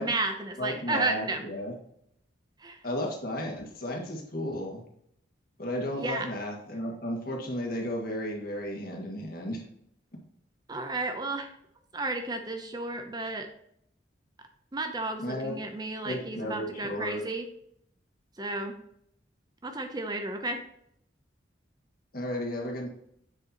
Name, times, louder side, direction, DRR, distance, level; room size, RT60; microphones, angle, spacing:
voice 1, 0.0-1.4 2.6-2.8 6.0-6.3 10.7-11.5 11.9-13.5 14.7-17.5 18.4-18.7 19.6-20.6, right 2 dB, 20° right, 6 dB, 0.6 m, -32 dB
voice 2, 0.6-1.7 2.8-4.8 5.6-9.6 15.2-15.5 16.0-17.2 22.1-22.9, left 1 dB, 50° left, -1 dB, 1.9 m, -34 dB
7.9 x 6.6 x 2.9 m, 0.72 s
head